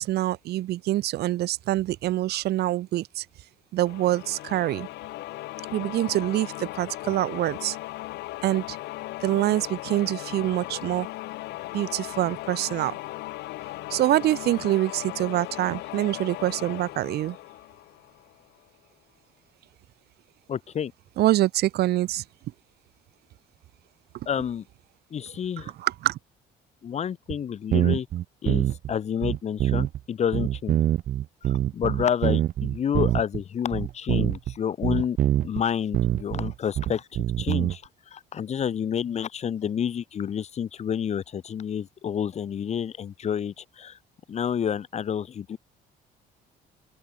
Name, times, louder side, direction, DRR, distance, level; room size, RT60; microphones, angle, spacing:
voice 1, 0.0-3.3 3.7-4.9 5.7-7.8 8.4-8.8 9.2-11.1 11.7-13.0 13.9-17.4 21.2-22.2 25.8-26.2, right 15 dB, 70° right, 2.3 m, -25 dB
sound 1, 3.8-18.5, left 18 dB, 85° left, 4.9 m, -37 dB
voice 2, 20.5-20.9 24.3-24.6 25.1-25.7 26.8-28.1 28.4-30.8 31.4-35.2 35.4-44.0 44.3-45.6, left 8 dB, 40° left, 1.1 m, -29 dB
sound 2, 27.3-27.4 27.7-28.9 29.2-30.0 30.3-33.4 33.7-34.5 34.8-35.6 35.9-37.8, right 12 dB, 55° right, 0.7 m, -24 dB
cardioid pair, 110°, 17 cm